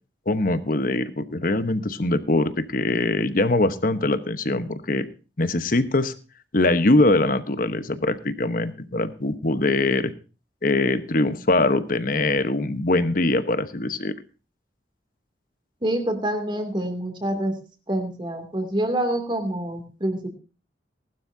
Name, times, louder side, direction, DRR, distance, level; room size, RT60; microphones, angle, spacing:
voice 1, 0.3-5.1 5.4-6.1 6.5-10.1 10.6-14.1, left 2 dB, 50° left, 12 dB, 1.1 m, -22 dB
voice 2, 15.8-17.6 17.9-20.3, right 1 dB, 25° right, 6 dB, 2.6 m, -26 dB
19.0 x 12.0 x 2.7 m, 0.34 s
head